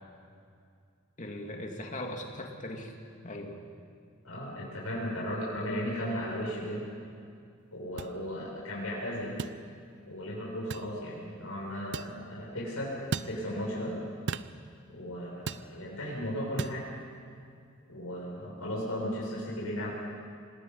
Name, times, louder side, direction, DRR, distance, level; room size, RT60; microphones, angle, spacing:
voice 1, 1.2-2.9 3.2-3.6, left 1 dB, 35° left, 2 dB, 2.4 m, -39 dB
voice 2, 4.2-6.8 7.7-9.4 10.0-12.9 13.3-14.0 14.9-16.8 17.9-19.9, equal, 90° left, -5 dB, 6.5 m, -35 dB
sound 1, 8.0-8.1 9.4-9.6 10.7-10.9 11.9-12.2 13.1-13.4 14.3-14.5 15.5-15.7 16.6-16.8, right 4 dB, 60° right, 0.6 m, -35 dB
26.5 x 19.0 x 5.5 m, 2.3 s
head